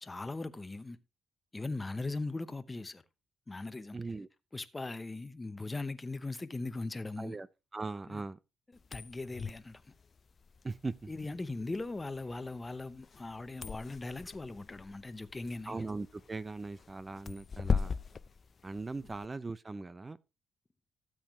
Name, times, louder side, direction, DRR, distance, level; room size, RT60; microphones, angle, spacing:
voice 1, 0.0-1.0 1.5-3.0 3.5-4.0 4.5-7.4 8.1-8.2 8.9-9.9 11.1-15.8, left 3 dB, 20° left, 0.9 m, -39 dB
voice 2, 3.9-4.3 7.2-7.5 7.7-8.4 10.6-11.1 15.7-18.0 18.6-20.2, right 3 dB, 25° right, 0.5 m, -39 dB
sound 1, 8.8-19.3, left 5 dB, 40° left, 0.5 m, -40 dB
12.5 x 7.9 x 3.2 m
cardioid pair, 90°, 0 cm